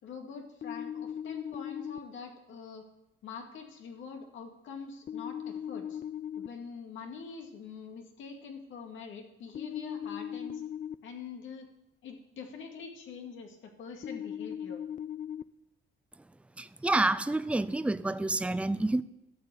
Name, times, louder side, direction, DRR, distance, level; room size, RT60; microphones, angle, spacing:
voice 1, 0.0-2.9 3.2-6.0 6.4-10.6 11.0-11.7 12.0-14.8, left 5 dB, 75° left, 3 dB, 2.3 m, -44 dB
sound 1, 0.6-2.0 5.1-6.5 9.6-10.9 14.0-15.4, left 9 dB, 40° left, 0.5 m, -38 dB
voice 2, 16.6-19.0, right 2 dB, 5° right, 14 dB, 0.5 m, -28 dB
13.0 x 6.8 x 8.8 m, 0.88 s
cardioid pair, 90°, 20 cm